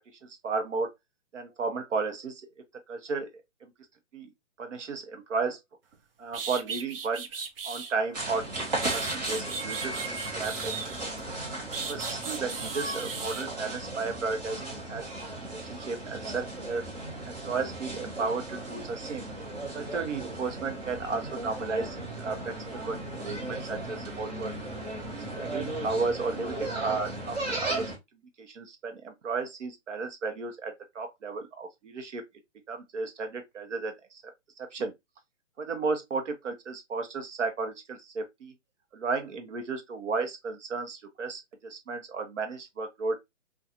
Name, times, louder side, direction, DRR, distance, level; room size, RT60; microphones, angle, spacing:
voice 1, 0.2-0.9 1.3-2.5 2.9-3.3 3.6-3.7 4.1-4.3 4.6-5.6 6.2-7.3 7.6-11.2 11.8-15.1 15.5-16.8 17.2-19.3 19.7-24.7 25.3-27.9 28.4-32.2 32.7-34.2 34.6-34.9 35.6-38.5 38.9-43.2, right 4 dB, 75° right, 0.9 m, -34 dB
sound 1, 5.9-6.0 6.3-7.9 8.5-11.2 11.7-13.5, right 5 dB, 50° right, 0.5 m, -37 dB
sound 2, 8.1-28.0, right 2 dB, 35° right, 1.1 m, -36 dB
2.4 x 2.4 x 2.6 m
hypercardioid pair, 165°, 37 cm